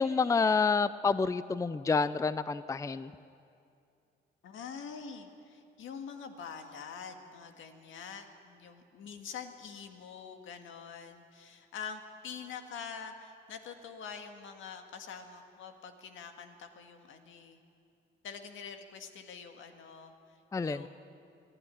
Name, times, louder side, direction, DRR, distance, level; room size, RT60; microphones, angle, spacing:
voice 1, 0.0-3.1 20.5-20.9, left 4 dB, 15° left, 15 dB, 0.5 m, -28 dB
voice 2, 4.4-17.6 18.2-20.9, left 6 dB, 75° left, 6 dB, 1.9 m, -45 dB
22.5 x 13.0 x 9.9 m, 2.5 s
cardioid pair, 90°, 20 cm